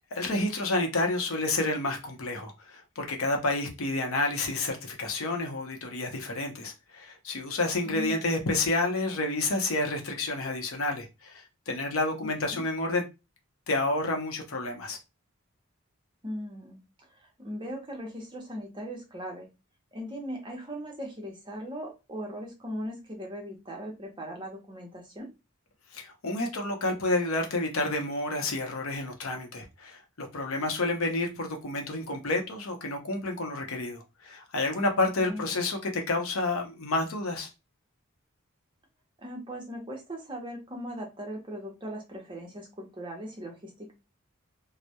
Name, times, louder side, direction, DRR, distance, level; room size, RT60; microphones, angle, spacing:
voice 1, 0.1-13.0 13.7-15.0 25.9-37.5, left 2 dB, 75° left, 0.6 m, -30 dB
voice 2, 7.8-8.2 12.4-12.6 16.2-19.5 19.9-25.3 35.2-35.6 39.2-43.9, equal, 25° right, 0.7 m, -39 dB
2.2 x 2.0 x 2.7 m
head